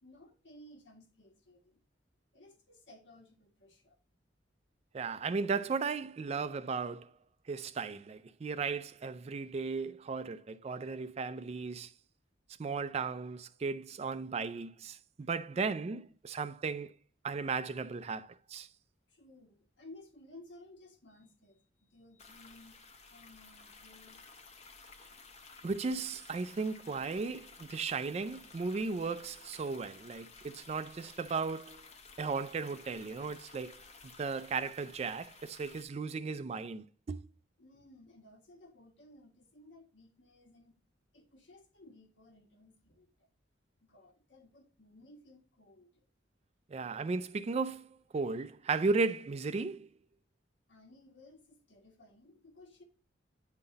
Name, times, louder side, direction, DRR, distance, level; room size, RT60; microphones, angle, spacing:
voice 1, 0.0-1.8 2.3-4.0 19.1-24.2 37.6-40.8 41.1-43.1 43.9-46.0 50.7-52.8, left 1 dB, 70° left, 1.6 m, -57 dB
voice 2, 4.9-7.1 7.5-11.9 12.6-16.9 17.2-18.7 25.6-31.8 32.2-33.8 34.2-37.3 46.7-47.9 48.1-49.9, right 4 dB, 35° right, 0.3 m, -35 dB
sound 1, 22.2-35.8, left 4 dB, 35° left, 0.7 m, -55 dB
9.7 x 3.9 x 4.0 m
head